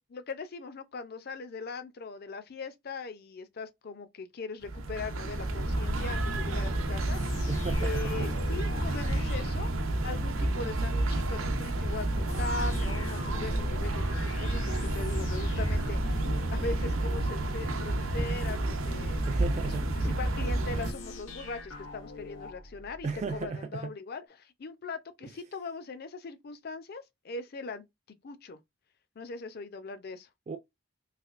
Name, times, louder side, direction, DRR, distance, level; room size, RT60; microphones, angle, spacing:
voice 1, 0.0-7.2 7.8-9.7 10.0-19.3 19.6-27.8 28.2-28.6 29.2-30.3, left 3 dB, 50° left, 0.5 m, -40 dB
sound 1, 4.6-20.9, right 1 dB, 85° right, 0.7 m, -30 dB
sound 2, 7.1-10.4 12.3-17.5 20.8-23.5, left 2 dB, 85° left, 0.9 m, -43 dB
voice 2, 7.5-8.3 8.8-9.0 19.3-20.2 23.0-23.9 30.5-30.6, right 4 dB, 35° right, 0.3 m, -35 dB
3.3 x 3.0 x 2.5 m
head